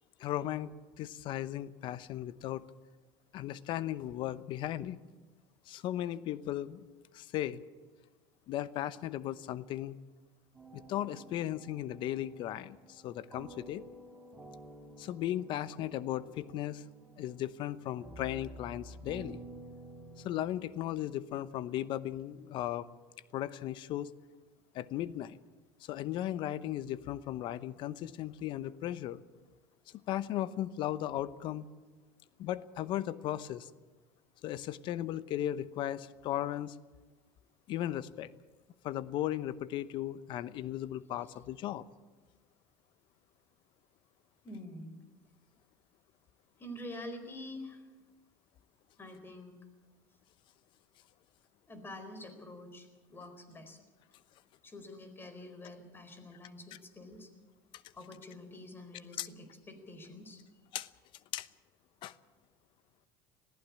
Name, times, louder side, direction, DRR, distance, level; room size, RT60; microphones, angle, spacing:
voice 1, 0.2-2.7 3.3-5.0 5.7-6.8 7.1-7.6 8.5-10.0 10.7-13.8 15.0-16.8 17.2-19.4 20.2-22.9 23.3-24.1 24.7-25.4 25.8-29.2 30.1-31.7 32.4-33.7 34.4-36.8 37.7-38.3 38.8-41.9 57.7-57.8 59.2-59.3 60.7-60.9 61.3-61.5 62.0-62.1, left 12 dB, 55° left, 16 dB, 0.9 m, -36 dB
sound 1, 10.5-20.5, right 2 dB, 10° right, 4.8 m, -51 dB
voice 2, 44.4-45.0 46.6-47.9 49.0-49.6 51.7-53.8 54.6-57.3 57.9-60.4, left 1 dB, 20° left, 9 dB, 4.4 m, -47 dB
20.5 x 15.0 x 8.5 m, 1.3 s
supercardioid pair, 100°, 10 cm